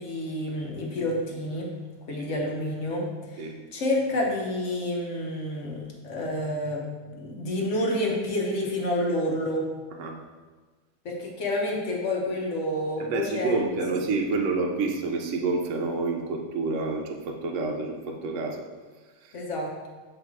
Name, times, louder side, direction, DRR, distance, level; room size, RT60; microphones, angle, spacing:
voice 1, 0.0-1.7 2.1-6.8 7.1-9.7 11.0-13.6 19.3-19.9, left 1 dB, 50° left, -1 dB, 1.0 m, -29 dB
voice 2, 13.0-18.6 19.2-19.3, right 3 dB, 80° right, 1 dB, 0.6 m, -28 dB
7.9 x 3.0 x 4.6 m, 1.3 s
omnidirectional pair, 2.3 m